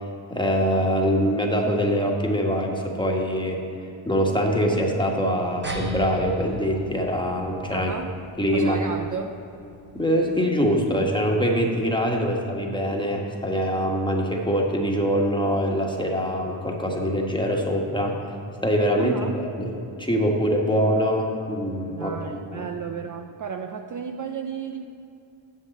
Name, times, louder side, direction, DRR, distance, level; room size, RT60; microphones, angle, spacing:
voice 1, 0.3-3.6 4.0-7.9 8.4-8.8 9.9-18.4 18.6-19.2 19.6-22.1 22.5-22.7, equal, 10° left, 0 dB, 1.4 m, -24 dB
sound 1, 5.6-10.5, right 1 dB, 20° right, 1.3 m, -39 dB
voice 2, 7.7-8.2 8.5-9.4 12.1-12.3 19.0-19.3 21.9-24.8, right 6 dB, 40° right, 5 dB, 0.5 m, -33 dB
7.2 x 6.6 x 7.7 m, 2.7 s
cardioid pair, 80°, 48 cm